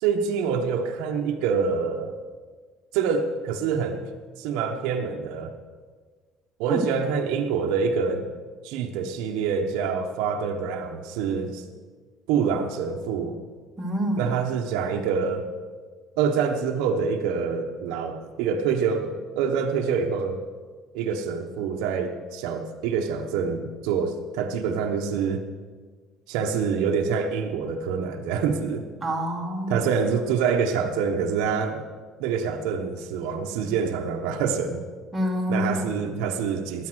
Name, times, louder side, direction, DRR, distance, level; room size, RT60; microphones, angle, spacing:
voice 1, 0.0-2.1 2.9-4.0 4.4-5.5 6.6-8.3 8.6-11.6 12.3-13.4 14.2-15.4 16.2-20.4 20.9-25.4 26.3-28.8 29.7-31.8 32.2-34.8 35.5-36.9, right 6 dB, 85° right, 4 dB, 1.2 m, -26 dB
voice 2, 13.8-14.3 29.0-29.8 35.1-35.9, equal, 10° right, -2 dB, 2.3 m, -27 dB
16.5 x 10.5 x 6.4 m, 1.5 s
cardioid pair, 165°, 0 cm